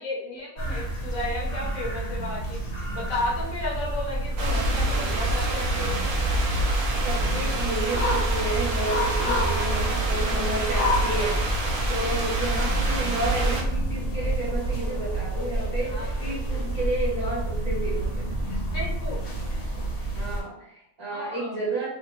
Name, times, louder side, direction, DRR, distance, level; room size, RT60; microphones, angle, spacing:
voice 1, 0.0-2.6 2.9-5.9 9.3-10.3 12.1-12.2 15.9-16.2 18.5-19.2 21.1-21.5, left 2 dB, 75° left, -2 dB, 1.1 m, -34 dB
sound 1, 0.6-20.4, right 1 dB, 50° left, 0.9 m, -28 dB
sound 2, 4.4-13.6, right 1 dB, 65° right, 0.5 m, -27 dB
voice 2, 7.0-11.4 11.9-18.3 20.1-21.9, right 2 dB, 30° right, -9 dB, 1.4 m, -31 dB
3.2 x 2.1 x 3.0 m, 0.75 s
omnidirectional pair, 1.5 m